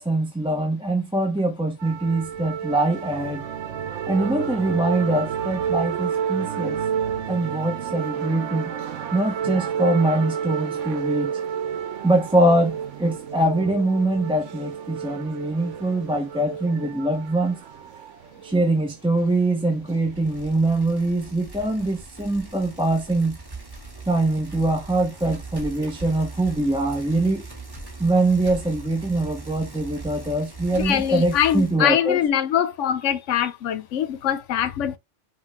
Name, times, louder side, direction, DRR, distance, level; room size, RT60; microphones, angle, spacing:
voice 1, 0.0-3.5 4.1-6.8 7.3-8.7 9.1-11.3 12.0-17.6 18.4-23.4 24.1-27.4 28.0-32.2, right 2 dB, 5° right, 0.7 m, -23 dB
sound 1, 1.8-20.5, right 8 dB, 85° right, 1.0 m, -31 dB
Bicycle, 20.1-31.8, right 3 dB, 20° right, 1.2 m, -39 dB
voice 2, 30.8-35.0, left 9 dB, 90° left, 1.0 m, -23 dB
5.6 x 2.7 x 3.0 m
omnidirectional pair, 1.2 m